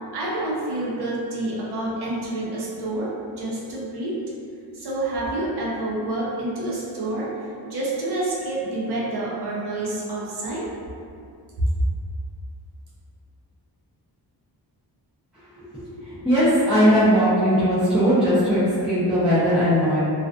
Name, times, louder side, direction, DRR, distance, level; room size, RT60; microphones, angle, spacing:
voice 1, 0.1-4.2 4.7-7.3 7.6-10.7 11.8-11.9, right 2 dB, 70° right, -5 dB, 0.6 m, -28 dB
voice 2, 16.2-20.0, equal, 5° right, -13 dB, 0.5 m, -19 dB
2.4 x 2.4 x 2.2 m, 2.4 s
wide cardioid pair, 155°, 40 cm